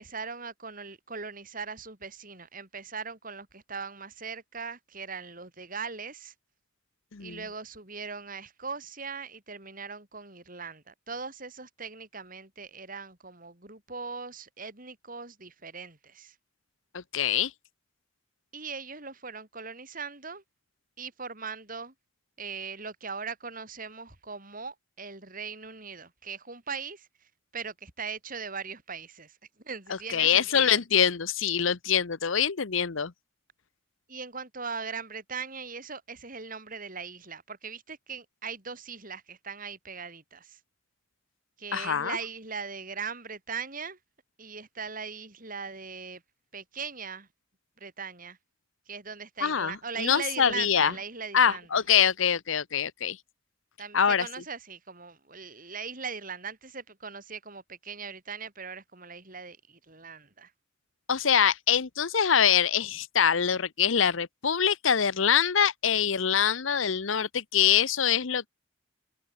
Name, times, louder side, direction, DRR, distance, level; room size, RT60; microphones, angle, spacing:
voice 1, 0.0-6.3 7.2-16.3 18.5-20.4 21.0-21.9 22.4-27.1 27.5-29.4 29.6-30.8 34.1-40.6 41.6-44.0 44.4-46.2 46.5-47.3 47.8-48.4 48.9-51.8 53.8-60.5, right 5 dB, 45° right, 5.0 m, -40 dB
voice 2, 7.1-7.4 16.9-17.5 29.9-33.1 41.7-42.2 49.4-50.9 51.3-53.2 53.9-54.3 61.1-68.5, left 8 dB, 75° left, 0.9 m, -24 dB
head